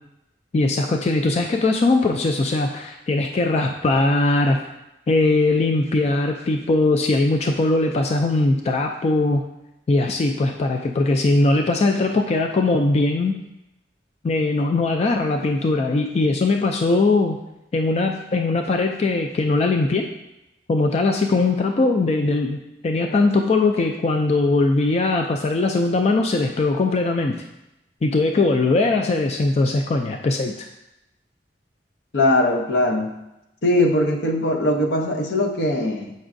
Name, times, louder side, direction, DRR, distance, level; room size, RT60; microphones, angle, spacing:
voice 1, 0.5-4.6 5.1-9.4 9.9-13.3 14.2-17.4 17.7-20.1 20.7-27.4 28.0-30.7, left 2 dB, 35° left, 4 dB, 0.3 m, -20 dB
voice 2, 32.1-33.1 33.6-36.1, left 1 dB, 75° left, 2 dB, 0.7 m, -20 dB
7.0 x 5.4 x 2.6 m, 0.91 s
head